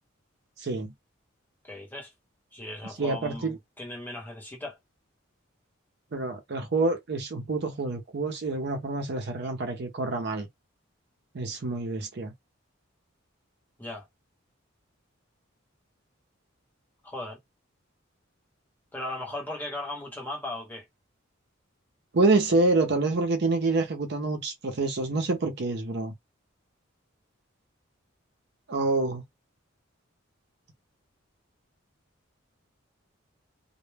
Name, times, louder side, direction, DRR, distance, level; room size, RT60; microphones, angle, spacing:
voice 1, 0.6-0.9 3.0-3.6 6.1-10.5 11.3-12.3 22.1-26.1 28.7-29.2, right 3 dB, 55° right, 0.5 m, -27 dB
voice 2, 1.6-2.1 2.5-4.8 13.8-14.1 17.0-17.4 18.9-20.8, left 1 dB, 10° left, 0.9 m, -37 dB
2.1 x 2.0 x 3.2 m
head